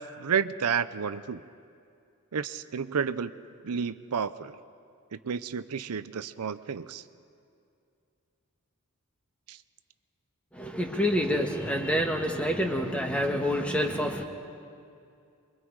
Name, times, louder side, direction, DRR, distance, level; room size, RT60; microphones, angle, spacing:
voice 1, 0.0-1.4 2.3-3.3 3.6-4.6 5.1-7.0 9.5-9.6, right 6 dB, 85° right, 12 dB, 0.6 m, -31 dB
voice 2, 10.5-14.2, equal, 5° left, 3 dB, 1.5 m, -27 dB
28.0 x 23.0 x 4.7 m, 2.5 s
head